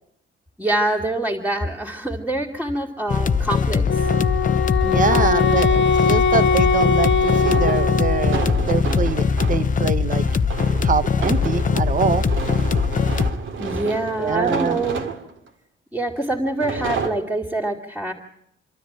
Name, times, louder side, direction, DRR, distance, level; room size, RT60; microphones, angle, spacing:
voice 1, 0.6-3.8 5.1-5.5 13.6-15.0 15.9-18.1, right 1 dB, 5° right, -6 dB, 2.7 m, -25 dB
sound 1, 3.1-13.3, left 6 dB, 40° left, 0.9 m, -21 dB
Wind instrument woodwind instrument, 3.9-8.7, left 5 dB, 70° left, 1.3 m, -21 dB
sound 2, 4.4-4.5 7.1-9.7 10.2-15.5 16.3-17.1, right 5 dB, 70° right, 2.4 m, -30 dB
voice 2, 4.8-10.3 10.8-12.2 14.2-14.8, right 5 dB, 40° right, 13 dB, 1.1 m, -24 dB
26.5 x 13.0 x 8.8 m, 0.75 s
wide cardioid pair, 135°, 20 cm